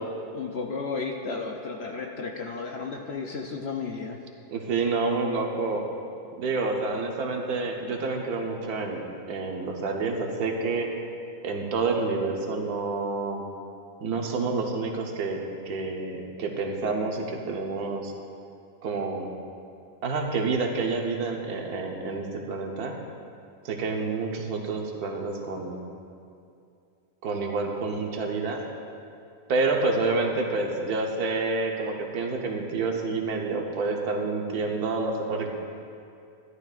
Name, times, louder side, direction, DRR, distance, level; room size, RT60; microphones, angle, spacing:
voice 1, 0.3-4.2, left 4 dB, 60° left, 2 dB, 0.7 m, -33 dB
voice 2, 4.5-5.8 6.4-10.9 11.4-13.4 14.0-15.4 15.6-18.1 18.8-19.3 20.0-23.0 23.6-25.8 27.2-28.6 29.5-35.5, right 3 dB, 85° right, 2 dB, 1.5 m, -28 dB
13.5 x 11.0 x 2.4 m, 2.5 s
omnidirectional pair, 1.6 m